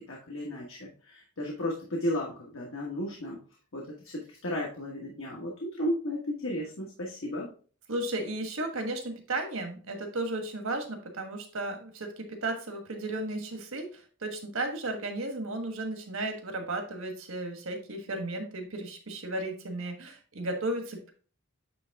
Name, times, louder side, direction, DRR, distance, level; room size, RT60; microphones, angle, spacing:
voice 1, 0.1-3.4 3.7-7.5, left 1 dB, 65° left, -2 dB, 1.4 m, -34 dB
voice 2, 7.9-21.1, right 2 dB, 70° right, 5 dB, 1.4 m, -34 dB
9.2 x 3.3 x 3.5 m, 0.39 s
head